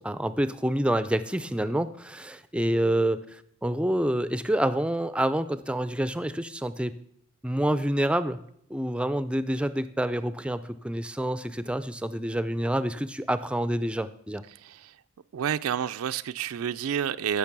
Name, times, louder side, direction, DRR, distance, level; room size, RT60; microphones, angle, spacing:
voice 1, 0.0-6.9 7.4-8.4 8.7-14.4, right 1 dB, 5° right, 0.4 m, -27 dB
voice 2, 14.5-15.0 15.3-17.4, right 8 dB, 70° right, 0.4 m, -30 dB
15.0 x 6.2 x 6.0 m
head